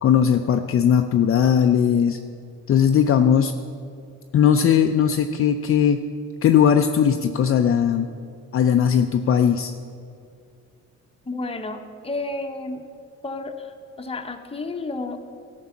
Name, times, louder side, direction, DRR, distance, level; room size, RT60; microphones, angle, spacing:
voice 1, 0.0-2.2 2.7-3.5 4.3-6.0 6.4-8.1 8.5-9.7, left 8 dB, 45° left, 6 dB, 0.5 m, -18 dB
voice 2, 11.2-12.8 13.2-15.2, left 2 dB, 20° left, 5 dB, 0.9 m, -31 dB
14.0 x 5.4 x 7.1 m, 2.3 s
cardioid pair, 90°, 30 cm